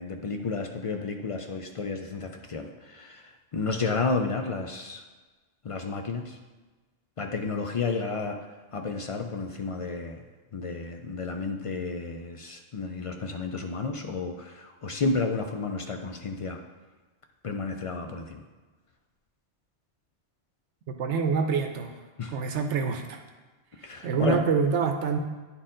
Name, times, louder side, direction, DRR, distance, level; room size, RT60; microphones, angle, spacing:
voice 1, 0.0-5.0 5.6-6.4 7.2-8.4 8.7-10.2 10.5-16.6 17.4-18.4 22.2-22.4 23.8-24.4, left 4 dB, 65° left, 4 dB, 0.3 m, -31 dB
voice 2, 20.9-21.9 22.3-23.2 24.0-25.2, right 5 dB, 85° right, 5 dB, 1.0 m, -26 dB
9.8 x 4.3 x 3.8 m, 1.3 s
omnidirectional pair, 1.2 m